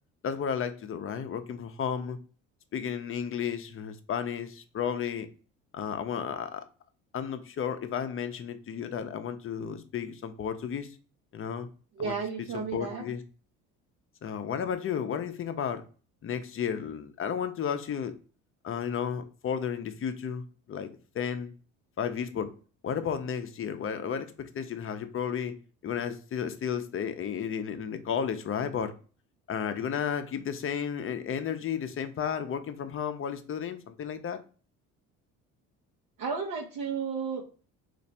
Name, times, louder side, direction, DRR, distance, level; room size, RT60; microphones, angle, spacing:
voice 1, 0.2-2.2 2.7-5.3 5.7-6.6 7.1-10.9 11.3-11.7 12.0-12.2 12.5-13.2 14.2-15.8 16.2-18.1 18.6-21.5 22.0-22.5 22.8-25.5 25.8-28.9 29.5-34.4, left 7 dB, 35° left, 0.6 m, -33 dB
voice 2, 12.0-13.0 36.2-37.4, right 5 dB, 65° right, 0.9 m, -33 dB
3.2 x 2.6 x 4.1 m
supercardioid pair, 75°, 35 cm